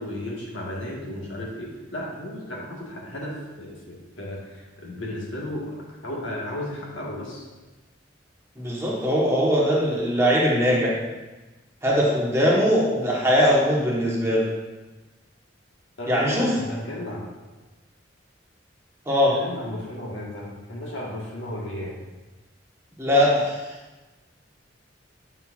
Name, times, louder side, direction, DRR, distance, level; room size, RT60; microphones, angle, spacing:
voice 1, 0.0-5.8 6.0-7.5 16.0-17.3 19.3-22.0, left 1 dB, 90° left, -3 dB, 1.5 m, -34 dB
voice 2, 8.6-10.9 11.8-14.5 16.1-16.5 19.1-19.3 23.0-23.7, equal, 15° right, -5 dB, 1.2 m, -21 dB
7.8 x 5.8 x 2.4 m, 1.1 s
head